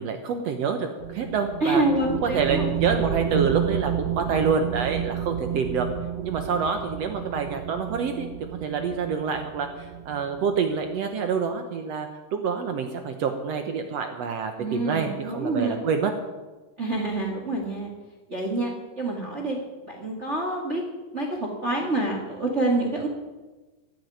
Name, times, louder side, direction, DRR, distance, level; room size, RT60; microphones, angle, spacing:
voice 1, 0.0-1.8 2.2-5.9 6.2-8.3 8.6-16.1, right 6 dB, 65° right, 6 dB, 1.7 m, -27 dB
sound 1, 1.0-11.0, right 10 dB, 90° right, 1.3 m, -31 dB
voice 2, 1.6-2.7 14.6-15.8 16.8-17.9 18.3-19.6 19.9-20.8 21.1-23.1, right 2 dB, 25° right, 0 dB, 1.8 m, -27 dB
15.0 x 7.9 x 9.4 m, 1.2 s
omnidirectional pair, 3.9 m